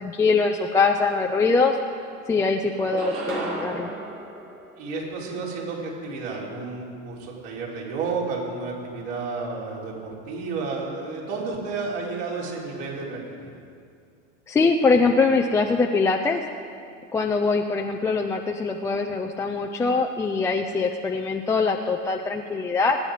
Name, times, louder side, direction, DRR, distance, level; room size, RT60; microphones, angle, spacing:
voice 1, 0.0-1.8 2.3-3.9 14.5-16.4 17.1-23.0, left 4 dB, 10° left, 2 dB, 0.3 m, -22 dB
sound 1, 1.5-2.3 2.7-5.3, right 2 dB, 90° right, 3.5 m, -35 dB
voice 2, 4.8-13.6, right 4 dB, 65° right, -3 dB, 4.1 m, -31 dB
22.0 x 9.4 x 5.0 m, 2.3 s
supercardioid pair, 125°, 38 cm